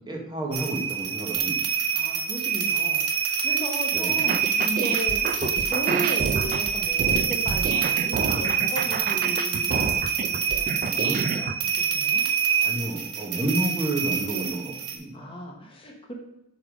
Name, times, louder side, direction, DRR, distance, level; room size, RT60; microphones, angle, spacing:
voice 1, 0.1-1.6 3.9-4.2 10.8-11.4 12.6-15.3, right 1 dB, 20° right, 0 dB, 1.1 m, -31 dB
sound 1, 0.5-15.0, right 7 dB, 85° right, 0.9 m, -26 dB
voice 2, 1.9-9.9 10.3-12.2 14.3-14.6 15.1-16.1, equal, 25° left, 1 dB, 0.9 m, -36 dB
sound 2, 4.2-11.5, right 5 dB, 40° right, 0.3 m, -29 dB
7.0 x 3.3 x 5.1 m, 0.85 s
head